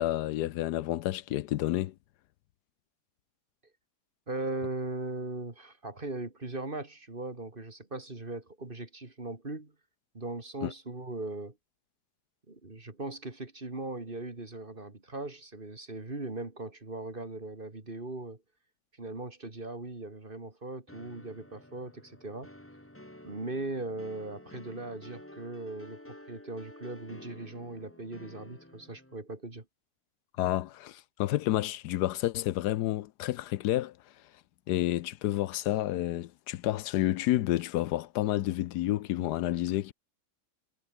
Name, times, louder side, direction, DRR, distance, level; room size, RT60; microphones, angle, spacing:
voice 1, 0.0-1.9 10.6-10.7 30.4-33.9 34.7-39.9, left 14 dB, 80° left, 1.2 m, -30 dB
voice 2, 4.3-9.7 10.1-11.6 12.5-18.4 19.0-22.5 23.2-29.6, right 2 dB, 30° right, 2.9 m, -39 dB
sound 1, 20.9-29.2, left 1 dB, 10° left, 2.5 m, -51 dB
omnidirectional pair, 1.7 m